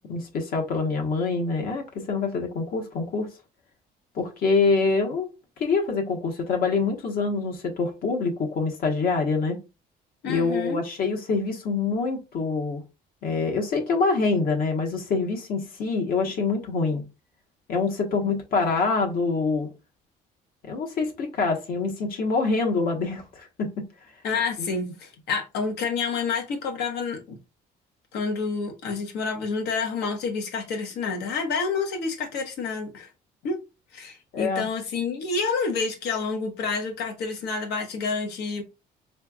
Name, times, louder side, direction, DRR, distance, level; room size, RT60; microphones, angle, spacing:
voice 1, 0.1-3.3 4.1-5.3 5.6-9.6 10.3-12.8 13.2-17.0 17.7-19.7 20.6-23.7 24.6-24.7 34.3-34.6, left 4 dB, 60° left, 1.1 m, -25 dB
voice 2, 10.2-10.8 24.2-27.4 28.1-33.1 33.4-33.6 33.9-38.6, left 4 dB, 80° left, 1.1 m, -28 dB
4.1 x 3.2 x 2.3 m
cardioid pair, 110°, 17 cm